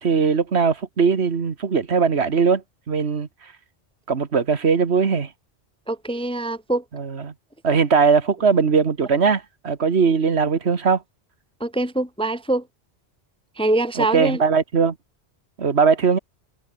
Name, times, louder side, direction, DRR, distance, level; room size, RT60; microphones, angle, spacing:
voice 1, 0.0-3.3 4.1-5.3 6.9-7.3 7.6-11.0 14.0-14.9 15.6-16.2, right 5 dB, 70° right, 1.8 m, -20 dB
voice 2, 5.9-6.8 11.6-12.6 13.6-14.4, right 2 dB, 5° left, 0.7 m, -23 dB
omnidirectional pair, 1.1 m